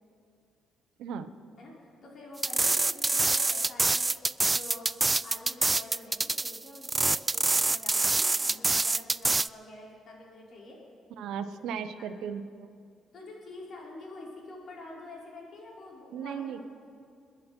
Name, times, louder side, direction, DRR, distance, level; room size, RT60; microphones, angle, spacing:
voice 1, 1.0-1.3 11.2-12.7 16.1-16.6, right 7 dB, 85° right, 10 dB, 0.9 m, -36 dB
voice 2, 1.6-4.9 5.2-10.8 11.4-11.5 12.0-12.2 13.1-16.9, left 2 dB, 55° left, -4 dB, 5.3 m, -47 dB
sound 1, 2.4-9.5, right 3 dB, 20° right, 0.3 m, -26 dB
28.5 x 10.5 x 4.5 m, 2.4 s
cardioid pair, 90°, 0 cm